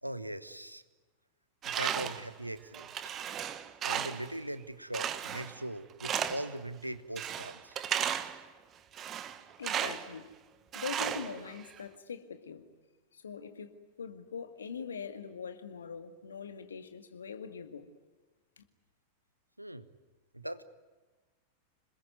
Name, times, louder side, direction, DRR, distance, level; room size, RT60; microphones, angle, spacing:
voice 1, 0.0-0.8 1.6-2.9 3.8-7.8 19.6-19.9 20.3-20.6, right 1 dB, 90° right, 1.2 m, -40 dB
Tools, 1.6-2.3 2.7-4.3 4.9-5.6 6.0-6.6 7.2-8.4 8.9-10.1 10.7-11.8, right 9 dB, 30° right, 1.4 m, -35 dB
voice 2, 9.6-10.3 10.7-12.7 13.1-17.9 18.6-18.7, left 6 dB, 70° left, 2.0 m, -42 dB
27.0 x 21.0 x 9.5 m
figure-of-eight pair, 90°, 0 cm